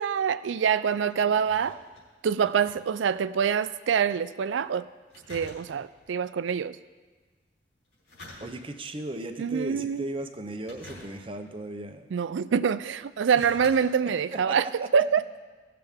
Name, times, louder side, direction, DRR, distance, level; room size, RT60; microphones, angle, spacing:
voice 1, 0.0-1.8 2.2-4.9 5.3-6.8 9.4-10.1 12.1-15.2, right 7 dB, 80° right, 15 dB, 0.4 m, -25 dB
sound 1, 0.7-3.5 3.8-3.9 5.1-6.1 7.8-9.0 9.5-9.9 10.6-11.5 12.3-12.4 13.0-13.8 14.2-14.3, left 2 dB, 75° left, 3.7 m, -48 dB
voice 2, 8.4-12.1 14.3-14.9, right 1 dB, 30° right, 7 dB, 0.6 m, -37 dB
17.5 x 6.7 x 3.6 m, 1.4 s
head